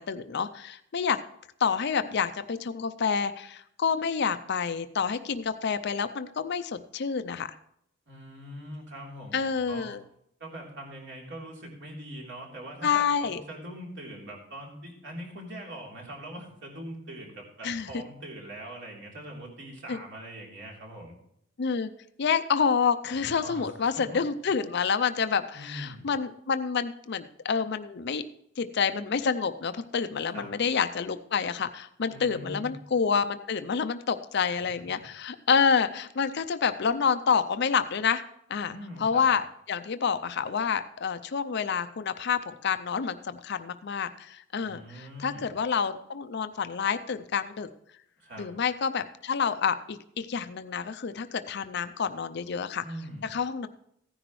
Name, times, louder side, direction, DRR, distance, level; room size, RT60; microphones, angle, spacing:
voice 1, 0.1-1.2 1.6-7.5 9.3-10.0 12.8-13.4 17.6-17.9 19.9-20.0 21.6-21.9 22.2-28.2 28.6-38.2 38.5-38.7 39.0-47.7 48.4-52.8 53.2-53.7, left 6 dB, 55° left, 11 dB, 0.5 m, -28 dB
voice 2, 8.1-10.0 10.4-21.2 23.3-24.2 25.5-26.1 30.3-30.5 32.1-32.7 34.3-34.5 38.7-39.3 44.6-45.5 48.2-48.5 52.8-53.3, right 1 dB, 60° right, -1 dB, 3.4 m, -42 dB
15.5 x 10.0 x 3.2 m, 0.72 s
head